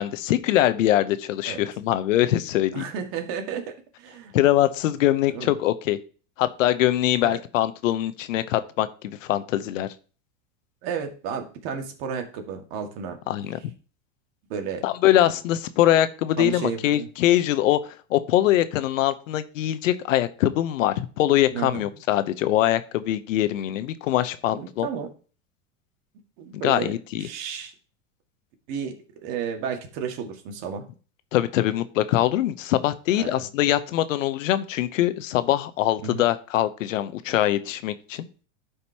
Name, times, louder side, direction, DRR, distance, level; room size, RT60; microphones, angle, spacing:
voice 1, 0.0-2.8 4.3-6.0 6.4-9.9 13.3-13.6 14.8-17.8 18.1-24.9 26.6-27.3 31.3-38.3, left 13 dB, 85° left, 12 dB, 0.9 m, -23 dB
voice 2, 2.7-4.3 5.3-5.5 7.2-7.4 10.8-13.2 14.5-14.9 16.4-17.1 21.5-21.9 24.5-25.1 26.4-26.9 27.2-27.7 28.7-28.9 29.2-30.8 33.2-33.5 36.0-36.2, right 7 dB, 60° right, 4 dB, 2.0 m, -32 dB
13.0 x 5.2 x 2.9 m, 0.37 s
supercardioid pair, 120°, 38 cm